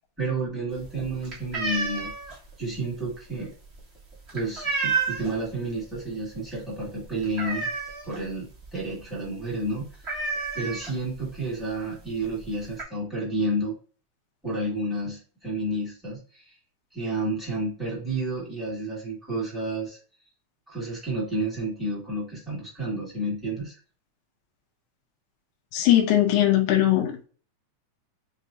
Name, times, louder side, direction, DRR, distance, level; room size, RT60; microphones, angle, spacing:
voice 1, 0.2-2.1 2.6-3.5 4.3-7.7 8.0-10.2 10.5-13.7 14.4-16.5 16.9-20.0 20.7-23.8, right 2 dB, ahead, -7 dB, 0.8 m, -30 dB
sound 1, 0.7-5.5 5.8-6.2 6.4-6.5 6.9-8.3 8.6-8.7 9.0-9.2 9.5-9.6 10.0-11.3 12.0-12.1 12.4-12.8, right 4 dB, 30° right, 1.2 m, -30 dB
voice 2, 25.7-27.1, left 12 dB, 80° left, 3 dB, 2.0 m, -20 dB
6.2 x 2.5 x 2.6 m, 0.39 s
omnidirectional pair, 3.7 m